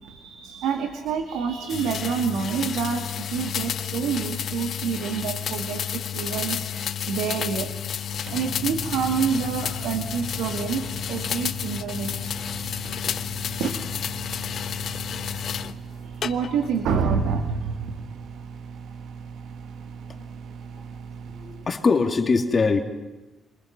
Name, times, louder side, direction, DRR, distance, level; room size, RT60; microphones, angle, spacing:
voice 1, 0.0-6.7 7.1-7.8 8.1-13.1 13.6-13.7 15.2-15.4 16.0-18.0, right 6 dB, 90° right, 5 dB, 2.5 m, -28 dB
sound 1, 1.7-15.7 16.2-16.8, left 9 dB, 60° left, 1.0 m, -31 dB
Microwave oven, 6.7-21.8, right 6 dB, 70° right, 1.6 m, -40 dB
voice 2, 21.3-22.8, left 4 dB, 35° left, 4 dB, 2.8 m, -23 dB
27.0 x 26.0 x 6.1 m, 1.1 s
cardioid pair, 90°, 0 cm